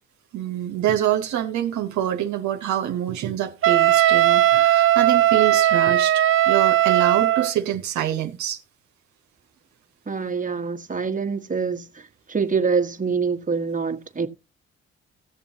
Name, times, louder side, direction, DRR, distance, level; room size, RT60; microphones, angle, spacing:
voice 1, 0.3-8.6, right 11 dB, 70° right, 1.1 m, -26 dB
Wind instrument woodwind instrument, 3.6-7.5, right 12 dB, 45° right, 0.5 m, -18 dB
voice 2, 10.1-14.3, right 5 dB, 25° right, 1.5 m, -25 dB
17.0 x 6.9 x 2.8 m
supercardioid pair, 55°, 30 cm